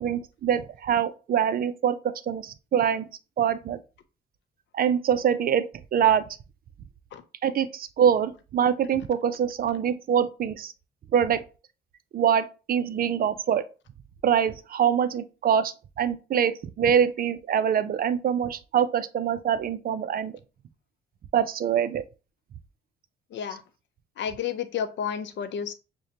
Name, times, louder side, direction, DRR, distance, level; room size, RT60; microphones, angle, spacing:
voice 1, 0.0-3.0 3.4-3.8 4.7-6.3 7.4-10.7 11.1-11.4 12.1-13.6 14.2-20.3 21.3-22.0, right 8 dB, 50° right, 0.4 m, -24 dB
voice 2, 24.2-25.7, left 8 dB, 65° left, 0.6 m, -31 dB
6.3 x 2.2 x 2.8 m
cardioid pair, 90°, 20 cm